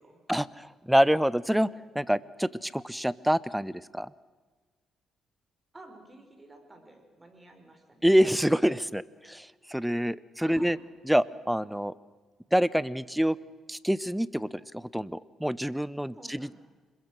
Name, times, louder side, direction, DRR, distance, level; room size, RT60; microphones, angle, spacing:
voice 1, 0.3-1.7 1.9-4.1 8.0-10.8 11.1-11.9 12.5-13.4 13.7-16.5, equal, 5° right, 19 dB, 0.7 m, -26 dB
voice 2, 5.7-8.1 10.4-10.8 16.1-16.5, right 2 dB, 20° right, 5 dB, 4.9 m, -52 dB
26.0 x 21.5 x 6.3 m, 1.4 s
cardioid pair, 90°, 0 cm